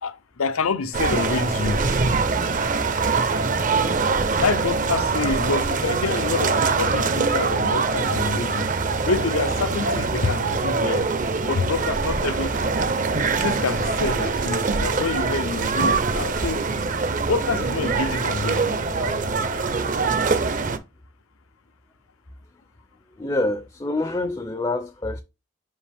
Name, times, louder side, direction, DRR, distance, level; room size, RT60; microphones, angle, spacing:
voice 1, 0.0-2.1 4.4-8.7 9.1-11.1 11.5-12.8 13.4-16.7 17.2-19.5, left 4 dB, 90° left, 0.7 m, -27 dB
sound 1, 0.9-20.8, right 4 dB, 40° right, 0.6 m, -23 dB
voice 2, 23.2-25.2, left 2 dB, 20° left, 0.4 m, -26 dB
5.4 x 5.2 x 3.4 m
head